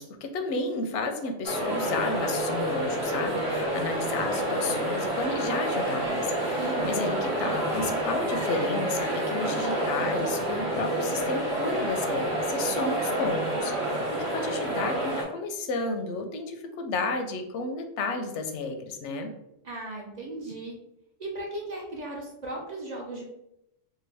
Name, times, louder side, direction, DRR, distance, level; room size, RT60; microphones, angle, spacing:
voice 1, 0.0-19.3, left 3 dB, 90° left, 6 dB, 0.9 m, -32 dB
sound 1, 1.4-15.2, right 1 dB, 70° right, 1.4 m, -28 dB
voice 2, 6.6-7.1 19.6-20.8 21.2-23.2, right 2 dB, 45° right, -2 dB, 0.7 m, -36 dB
3.7 x 2.2 x 3.2 m, 0.83 s
omnidirectional pair, 1.1 m